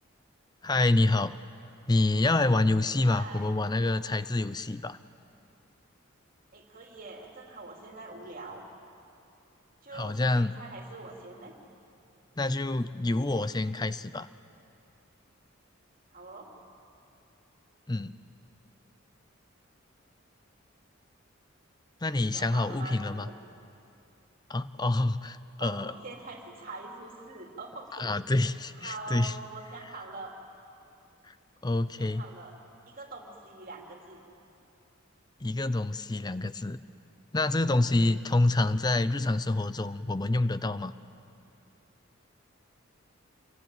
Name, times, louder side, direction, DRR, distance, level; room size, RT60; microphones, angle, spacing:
voice 1, 0.6-1.4 1.9-5.0 9.9-10.6 12.4-14.3 17.9-18.1 22.0-23.3 24.5-25.9 28.0-29.3 31.3-31.4 31.6-32.2 35.4-36.8 37.3-40.9, left 2 dB, 20° left, 14 dB, 0.6 m, -27 dB
voice 2, 3.0-3.6 6.5-8.6 9.8-11.5 16.1-16.6 22.2-23.4 25.6-28.1 28.8-30.4 32.0-32.6 32.9-34.2, right 3 dB, 45° right, 1 dB, 3.1 m, -44 dB
27.0 x 22.5 x 9.1 m, 2.7 s
head